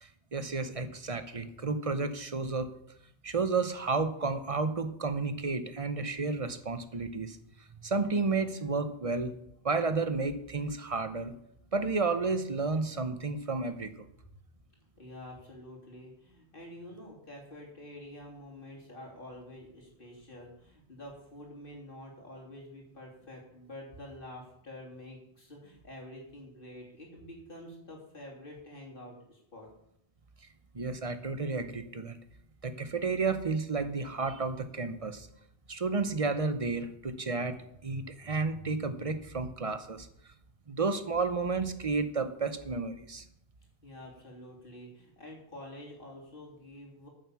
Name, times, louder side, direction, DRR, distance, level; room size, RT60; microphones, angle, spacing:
voice 1, 0.0-2.7 3.2-7.4 7.8-9.3 9.6-11.3 11.7-13.9 30.7-32.2 32.6-35.3 35.7-40.1 40.7-43.2, right 4 dB, 35° right, 9 dB, 1.0 m, -32 dB
voice 2, 15.0-29.7 43.8-47.1, left 1 dB, 55° left, -2 dB, 3.2 m, -48 dB
9.3 x 7.6 x 7.0 m, 0.75 s
omnidirectional pair, 1.1 m